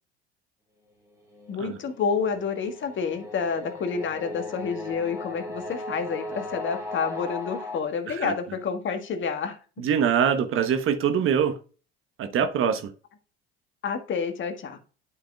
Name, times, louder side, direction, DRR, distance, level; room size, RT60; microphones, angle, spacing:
sound 1, 1.1-7.8, left 2 dB, 10° right, 2.9 m, -37 dB
voice 1, 1.5-9.6 13.8-14.8, left 6 dB, 40° left, 1.5 m, -29 dB
voice 2, 9.8-11.6 12.2-12.9, right 7 dB, 45° right, 1.0 m, -24 dB
11.5 x 5.0 x 2.3 m
hypercardioid pair, 70°, 30 cm